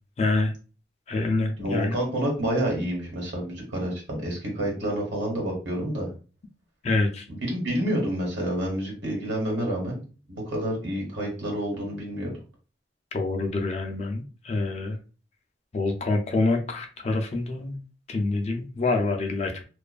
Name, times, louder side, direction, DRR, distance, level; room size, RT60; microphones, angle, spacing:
voice 1, 0.2-0.5 1.1-2.0 6.8-7.2 13.1-15.0 15.7-17.8 18.1-19.6, left 3 dB, 35° left, 4 dB, 0.3 m, -26 dB
voice 2, 1.6-6.1 7.3-10.0 10.3-12.3, right 1 dB, 90° right, -1 dB, 1.2 m, -28 dB
2.5 x 2.3 x 2.2 m, 0.36 s
head